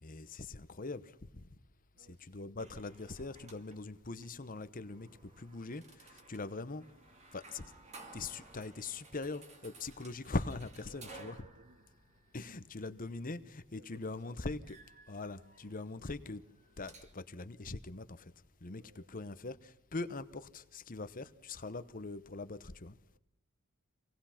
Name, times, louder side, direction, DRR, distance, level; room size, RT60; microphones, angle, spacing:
voice 1, 0.0-1.4 2.0-5.1 5.4-6.9 7.3-7.7 8.1-11.5 12.3-14.8 15.1-16.4 16.8-18.3 18.6-23.0, left 3 dB, 40° left, 0.9 m, -42 dB
voice 2, 1.9-2.6 10.9-11.9 13.7-14.5 18.7-19.1 23.1-23.2, right 2 dB, 50° right, 1.8 m, -63 dB
sound 1, 2.6-17.1, right 3 dB, 30° right, 2.3 m, -58 dB
27.0 x 19.0 x 5.8 m
head